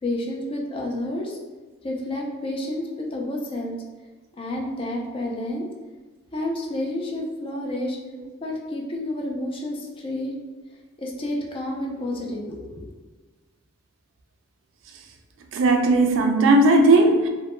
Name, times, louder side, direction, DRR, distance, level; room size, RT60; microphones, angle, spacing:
voice 1, 0.0-1.4 1.8-3.8 4.4-5.7 6.3-8.0 8.4-10.3 11.0-12.9, left 1 dB, 25° left, -1 dB, 0.3 m, -30 dB
voice 2, 15.5-17.3, right 2 dB, 65° right, 3 dB, 0.3 m, -17 dB
2.1 x 2.0 x 2.9 m, 1.3 s
head